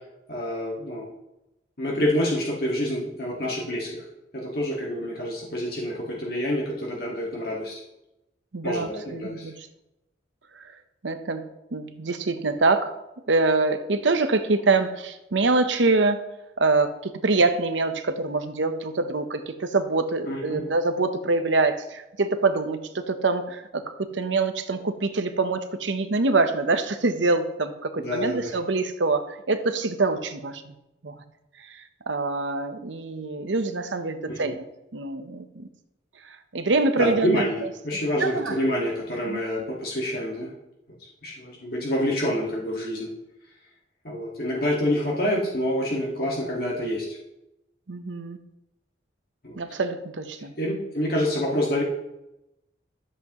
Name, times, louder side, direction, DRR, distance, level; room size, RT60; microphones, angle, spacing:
voice 1, 0.3-1.1 1.8-4.0 4.3-7.8 8.6-9.5 20.3-20.6 28.0-28.5 34.3-34.6 37.0-40.5 41.2-43.1 44.0-47.2 49.4-49.6 50.6-51.8, equal, 55° left, -3 dB, 1.8 m, -27 dB
voice 2, 8.5-9.7 10.6-10.7 11.0-11.4 11.7-12.9 13.3-16.2 16.6-30.7 31.0-31.1 31.6-34.6 34.9-35.7 36.5-37.4 38.2-38.6 39.2-39.4 47.9-48.4 49.6-50.5, right 3 dB, 90° right, 9 dB, 0.9 m, -25 dB
13.0 x 7.7 x 3.0 m, 0.91 s
head